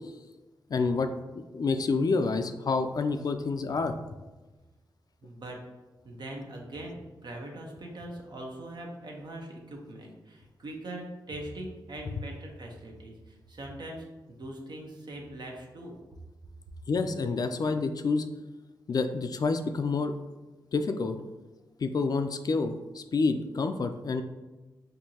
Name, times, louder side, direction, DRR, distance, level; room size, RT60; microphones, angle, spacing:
voice 1, 0.7-1.1 1.5-3.9 16.9-18.3 18.9-20.1 20.7-21.2 21.8-24.2, left 4 dB, 50° left, 8 dB, 0.3 m, -28 dB
voice 2, 5.2-5.6 6.0-16.0, right 1 dB, 60° right, 1 dB, 0.8 m, -42 dB
4.4 x 2.6 x 2.8 m, 1.2 s
cardioid pair, 60°, 8 cm